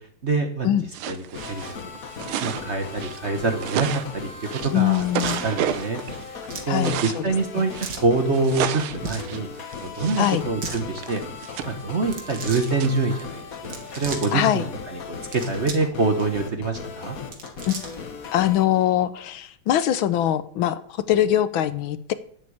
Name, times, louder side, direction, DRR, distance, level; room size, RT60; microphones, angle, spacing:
voice 1, 0.2-0.7 1.1-1.8 2.2-4.3 4.6-5.1 5.4-6.0 6.3-7.7 8.0-9.5 9.8-11.2 11.7-13.4 13.7-17.2, right 3 dB, 40° right, 6 dB, 1.2 m, -25 dB
sound 1, 0.9-7.2 7.7-10.4 10.7-14.0, right 10 dB, 80° right, 1.6 m, -32 dB
sound 2, 1.4-18.6, left 5 dB, 45° left, 1.5 m, -38 dB
voice 2, 4.7-5.4 6.7-7.2 10.2-10.4 14.3-14.6 17.7-17.8 18.3-20.8 21.1-22.1, left 12 dB, 75° left, 13 dB, 1.5 m, -22 dB
sound 3, 5.2-5.5 6.5-6.7 7.8-8.1 8.9-9.3 10.4-10.8 12.0-12.7 13.6-14.3 15.1-15.9 16.2-16.3 17.1-18.1, right 4 dB, 60° right, 2.5 m, -36 dB
10.5 x 7.4 x 8.7 m, 0.62 s
omnidirectional pair, 2.3 m